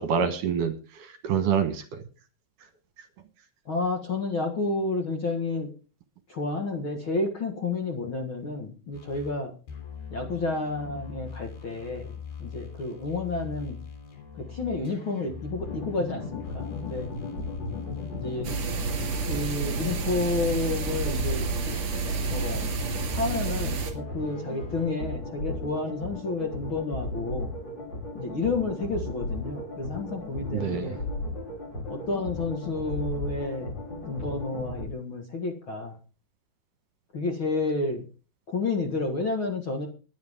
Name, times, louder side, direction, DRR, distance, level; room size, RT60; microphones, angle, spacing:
voice 1, 0.0-1.8 30.5-31.0, right 7 dB, 65° right, 9 dB, 2.6 m, -27 dB
voice 2, 3.7-5.7 6.3-9.5 10.1-13.8 14.5-17.1 18.1-18.5 19.3-21.4 22.3-22.7 23.1-27.5 28.1-31.0 31.9-33.7 34.1-36.0 37.1-38.1 38.5-39.9, left 3 dB, 45° left, 3 dB, 1.8 m, -30 dB
sound 1, 8.9-9.4 9.7-24.9, left 6 dB, 70° left, 4.9 m, -42 dB
sound 2, 15.6-34.9, left 2 dB, 30° left, 4.0 m, -36 dB
sound 3, 18.4-23.9, right 4 dB, 50° right, 3.4 m, -30 dB
21.0 x 9.9 x 3.6 m, 0.36 s
omnidirectional pair, 4.4 m